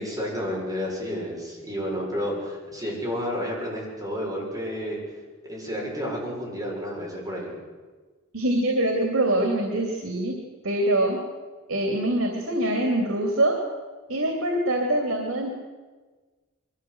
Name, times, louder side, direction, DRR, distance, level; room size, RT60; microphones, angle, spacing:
voice 1, 0.0-5.0 5.5-7.6, equal, 20° right, -3 dB, 6.8 m, -31 dB
voice 2, 8.3-10.4 10.6-11.2 11.7-13.6 14.1-15.5, right 1 dB, 90° right, 2 dB, 3.0 m, -24 dB
22.5 x 14.5 x 8.0 m, 1.4 s
head